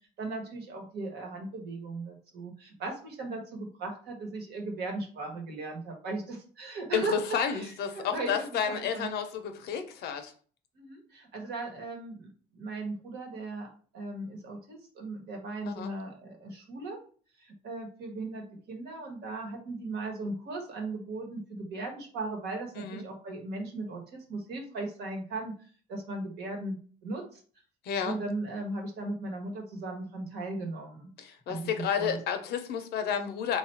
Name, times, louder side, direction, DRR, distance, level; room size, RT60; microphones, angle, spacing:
voice 1, 0.2-9.1 10.7-13.7 13.9-17.0 17.4-25.5 25.9-26.8 27.0-27.4 28.0-32.2, right 2 dB, 75° right, 2 dB, 1.2 m, -37 dB
voice 2, 6.9-10.3 15.7-15.9 22.7-23.0 27.8-28.2 31.2-33.6, left 7 dB, 70° left, 7 dB, 0.7 m, -31 dB
3.2 x 2.4 x 4.4 m, 0.43 s
cardioid pair, 110°, 17 cm